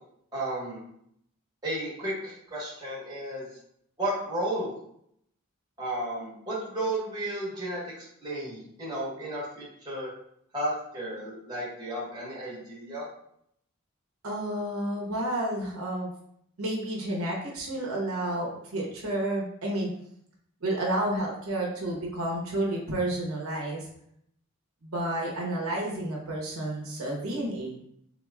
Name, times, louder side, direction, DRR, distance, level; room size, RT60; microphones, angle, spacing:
voice 1, 0.3-0.8 1.6-3.5 4.0-4.7 5.8-10.1 10.5-13.0, right 1 dB, 20° right, -7 dB, 1.2 m, -33 dB
voice 2, 14.2-16.1 16.6-19.9 20.6-23.9 24.8-27.8, right 1 dB, 80° right, -2 dB, 0.8 m, -30 dB
3.8 x 2.9 x 2.3 m, 0.71 s
head